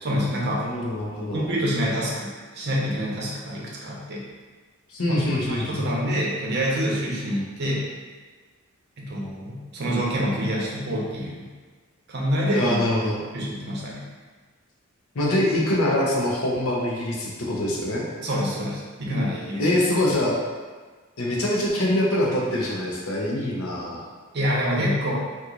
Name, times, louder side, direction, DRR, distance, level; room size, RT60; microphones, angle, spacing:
voice 1, 0.0-0.6 1.3-4.2 5.1-7.8 9.0-11.5 12.1-12.8 13.3-14.0 18.2-19.7 24.3-25.1, equal, 50° right, -4 dB, 0.7 m, -26 dB
voice 2, 0.6-1.4 4.9-5.9 12.5-13.2 15.1-18.0 19.6-20.4 21.2-24.1, left 1 dB, 75° left, -3 dB, 0.7 m, -24 dB
2.9 x 2.4 x 3.7 m, 1.4 s
head